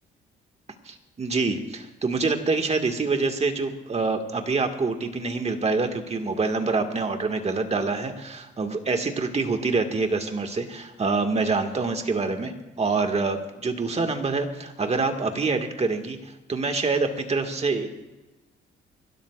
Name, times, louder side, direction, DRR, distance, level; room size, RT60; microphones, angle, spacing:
voice 1, 0.9-12.5 12.8-16.2 16.5-17.9, right 3 dB, 35° right, 5 dB, 1.8 m, -26 dB
29.0 x 12.5 x 2.5 m, 1.1 s
cardioid pair, 90°, 20 cm